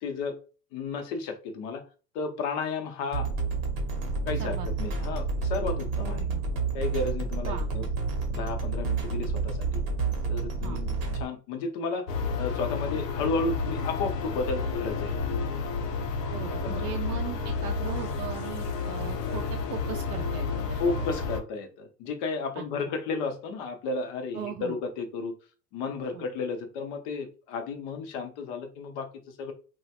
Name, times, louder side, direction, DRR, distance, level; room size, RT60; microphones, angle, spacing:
voice 1, 0.0-0.4 0.7-1.8 2.1-3.3 4.3-6.3 6.7-7.8 8.3-9.8 10.3-12.1 12.4-15.2 16.6-17.0 20.8-25.3 25.7-29.5, left 4 dB, 30° left, 5 dB, 0.4 m, -33 dB
sound 1, 3.1-11.3, right 4 dB, 35° right, 0.9 m, -29 dB
voice 2, 6.0-6.4 7.4-7.7 10.6-10.8 16.3-21.2 22.5-22.9 24.3-24.8 26.1-26.3, right 10 dB, 70° right, 3 dB, 0.6 m, -39 dB
sound 2, 12.1-21.4, left 4 dB, 85° left, 0.7 m, -31 dB
2.9 x 2.3 x 2.7 m, 0.36 s
supercardioid pair, 135°, 47 cm